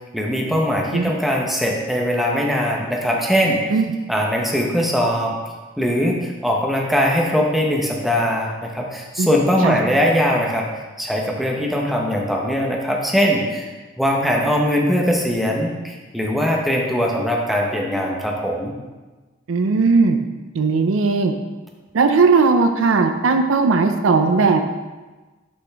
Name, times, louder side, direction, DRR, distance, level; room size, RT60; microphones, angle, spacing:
voice 1, 0.1-3.6 4.1-5.4 5.8-10.6 11.0-13.7 14.0-18.7, equal, ahead, -1 dB, 0.8 m, -21 dB
voice 2, 19.5-20.2 20.5-21.3 21.9-24.8, right 4 dB, 75° right, 7 dB, 0.5 m, -17 dB
6.8 x 5.1 x 3.5 m, 1.2 s
head